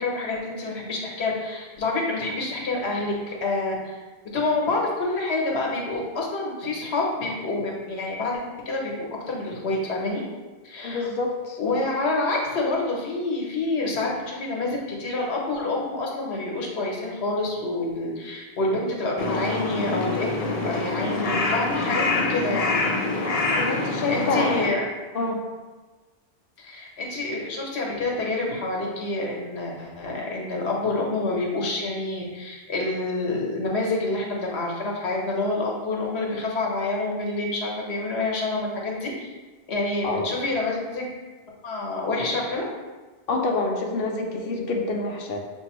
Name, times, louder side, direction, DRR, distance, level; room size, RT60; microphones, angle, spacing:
voice 1, 0.0-4.0 4.3-10.2 10.6-11.1 11.6-22.8 23.8-24.9 26.6-39.3 39.7-41.1 41.6-42.6, left 2 dB, 85° left, -2 dB, 1.2 m, -27 dB
voice 2, 10.8-11.6 23.6-24.6 25.1-25.4 40.0-40.2 43.3-45.4, left 3 dB, 65° left, 1 dB, 0.8 m, -27 dB
Crow, 19.2-24.7, left 2 dB, 50° left, 0.5 m, -25 dB
6.1 x 2.6 x 3.0 m, 1.3 s
omnidirectional pair, 1.1 m